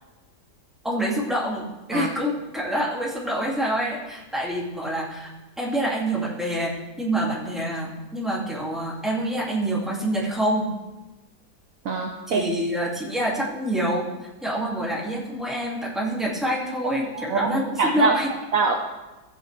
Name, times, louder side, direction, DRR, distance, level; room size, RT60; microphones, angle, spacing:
voice 1, 0.8-5.3 5.6-6.7 7.0-10.7 12.3-14.1 14.4-18.3, right 1 dB, ahead, -5 dB, 2.3 m, -26 dB
voice 2, 11.8-12.4 17.1-17.5 17.8-18.1 18.5-18.7, right 4 dB, 60° right, 2 dB, 1.1 m, -23 dB
15.5 x 8.3 x 3.4 m, 1.1 s
omnidirectional pair, 1.8 m